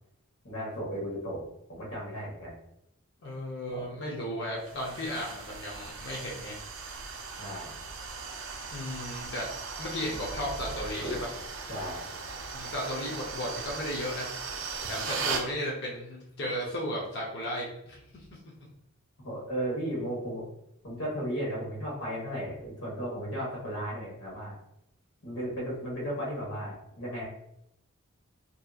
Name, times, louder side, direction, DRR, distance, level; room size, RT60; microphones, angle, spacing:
voice 1, 0.4-2.6 3.7-3.9 7.4-7.7 11.0-11.3 11.7-12.1 19.2-20.4 20.8-24.6 25.2-27.2, equal, 70° left, -5 dB, 1.2 m, -35 dB
voice 2, 3.2-6.6 8.7-9.5 9.8-11.3 12.5-14.3 14.9-18.0, equal, 50° left, -3 dB, 0.6 m, -35 dB
sound 1, 4.6-15.5, right 4 dB, 60° right, 0.4 m, -38 dB
2.7 x 2.5 x 2.3 m, 0.78 s
head